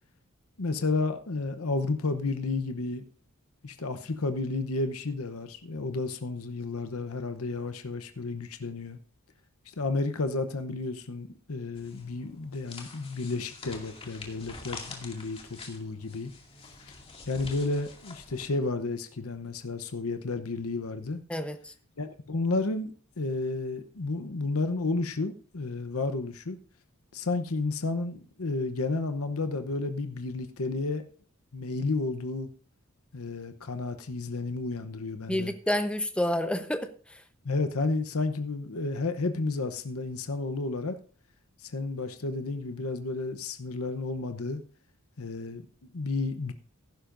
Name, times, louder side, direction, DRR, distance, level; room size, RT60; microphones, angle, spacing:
voice 1, 0.6-3.0 3.6-9.0 9.8-16.3 17.3-21.2 22.0-26.6 27.1-31.0 31.5-32.5 33.1-35.5 37.4-41.0 41.6-44.6 45.2-45.6 45.9-46.5, left 3 dB, 80° left, 0.9 m, -32 dB
sound 1, 11.8-18.5, left 3 dB, 25° left, 2.4 m, -46 dB
voice 2, 21.3-21.7 35.3-37.2, left 1 dB, 5° left, 0.9 m, -29 dB
15.0 x 11.5 x 2.6 m
head